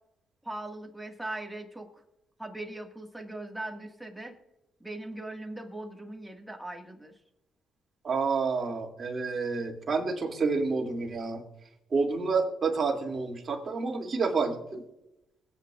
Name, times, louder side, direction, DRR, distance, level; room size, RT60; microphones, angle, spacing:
voice 1, 0.4-1.9 2.4-4.3 4.8-7.2, right 2 dB, 5° right, 3 dB, 1.9 m, -40 dB
voice 2, 8.0-11.4 11.9-14.8, right 4 dB, 40° right, 0 dB, 2.7 m, -29 dB
24.5 x 8.5 x 2.5 m, 0.90 s
cardioid pair, 90°, 0 cm